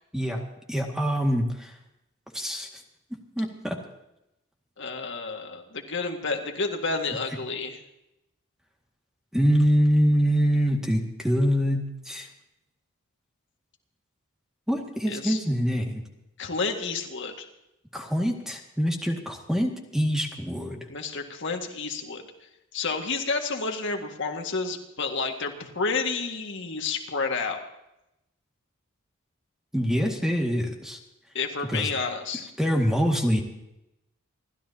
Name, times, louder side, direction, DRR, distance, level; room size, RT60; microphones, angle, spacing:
voice 1, 0.7-1.8 2.3-2.7 3.4-3.8 9.3-12.3 14.7-16.0 17.9-20.9 29.7-31.0 31.7-31.9 32.6-33.4, equal, ahead, 1 dB, 2.0 m, -24 dB
voice 2, 4.8-7.8 15.1-15.4 16.4-17.5 20.9-22.2 22.7-27.6 31.3-32.5, left 4 dB, 60° left, 3 dB, 1.9 m, -30 dB
29.0 x 13.0 x 2.9 m, 0.87 s
head